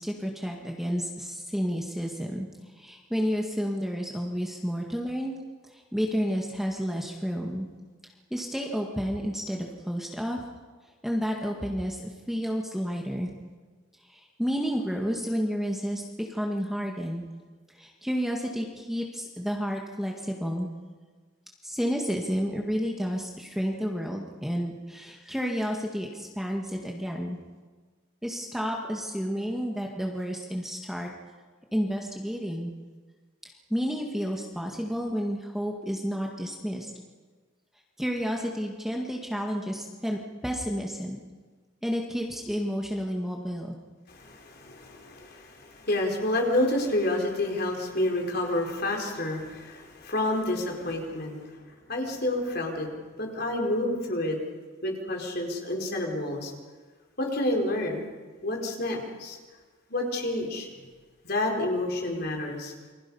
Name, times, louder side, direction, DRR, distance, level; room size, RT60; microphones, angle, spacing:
voice 1, 0.0-2.5 2.8-5.4 5.7-7.7 8.3-10.4 11.0-12.0 12.3-13.3 14.1-17.2 17.8-20.7 21.6-27.4 28.2-31.1 31.7-32.7 33.7-36.9 38.0-41.2 41.8-43.8, equal, ahead, 0 dB, 1.8 m, -31 dB
voice 2, 44.1-51.6 51.9-52.9 53.2-54.4 54.8-56.5 57.2-58.1 58.4-59.4 59.9-60.7 61.2-62.7, left 1 dB, 50° left, 1 dB, 4.5 m, -29 dB
29.0 x 24.5 x 5.6 m, 1.4 s
head